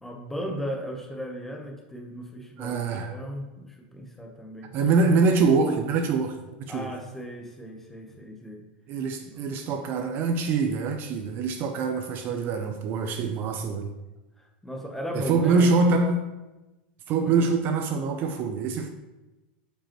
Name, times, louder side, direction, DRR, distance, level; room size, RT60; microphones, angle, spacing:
voice 1, 0.0-4.7 6.7-8.6 9.2-9.4 14.4-15.7 17.2-17.3, equal, 5° left, 1 dB, 0.9 m, -36 dB
voice 2, 2.6-3.2 4.7-6.9 8.9-13.9 15.1-16.3 17.1-18.9, right 4 dB, 40° right, 6 dB, 0.5 m, -24 dB
8.7 x 5.2 x 3.0 m, 1.1 s
supercardioid pair, 145°, 5 cm